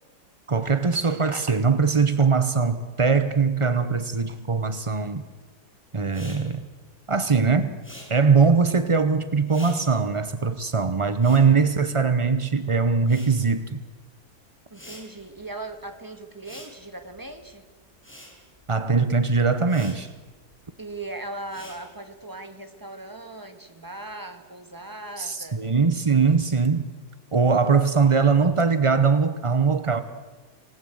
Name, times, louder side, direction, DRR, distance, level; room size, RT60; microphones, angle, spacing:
voice 1, 0.5-5.2 5.9-6.6 7.1-7.8 8.1-13.8 18.7-20.1 25.2-26.9 27.3-30.0, right 5 dB, 50° right, 11 dB, 0.3 m, -21 dB
Respiratory sounds, 6.1-12.5 12.8-22.2, equal, 5° left, 6.1 m, -49 dB
voice 2, 14.7-17.6 20.8-25.6, right 2 dB, 10° right, 7 dB, 1.6 m, -38 dB
26.5 x 19.0 x 8.0 m, 1.3 s
omnidirectional pair, 2.2 m